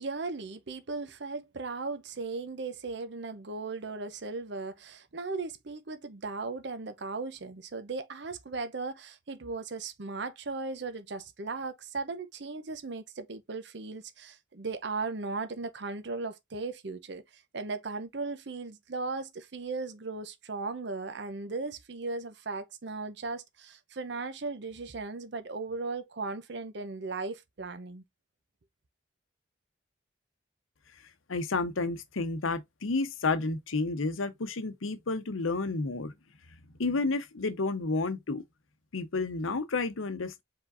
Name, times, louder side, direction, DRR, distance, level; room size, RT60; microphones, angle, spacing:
voice 1, 0.0-28.0, right 3 dB, 60° right, 0.7 m, -37 dB
voice 2, 31.3-36.1 36.8-38.4 38.9-40.4, left 3 dB, 85° left, 0.8 m, -31 dB
4.8 x 3.8 x 2.5 m
head